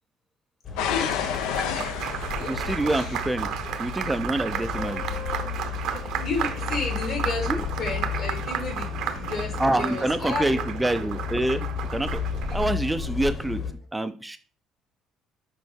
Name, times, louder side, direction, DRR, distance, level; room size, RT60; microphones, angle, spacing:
sound 1, 0.6-13.7, left 6 dB, 45° left, 1.7 m, -33 dB
sound 2, 0.8-9.6 10.3-10.7 11.3-11.4, left 8 dB, 85° left, 0.6 m, -34 dB
voice 1, 0.9-1.5 2.3-2.5 2.9-3.2 4.5-10.5 12.5-12.6, left 3 dB, 65° left, 1 dB, 2.7 m, -33 dB
Applause, 1.0-12.7, right 9 dB, 70° right, 0.7 m, -33 dB
voice 2, 2.4-3.5 3.8-5.0 7.5-7.6 9.6-12.2 12.5-13.6 13.9-14.4, right 1 dB, 10° right, 10 dB, 0.4 m, -26 dB
6.0 x 4.5 x 3.5 m, 0.37 s
cardioid pair, 100°, 0 cm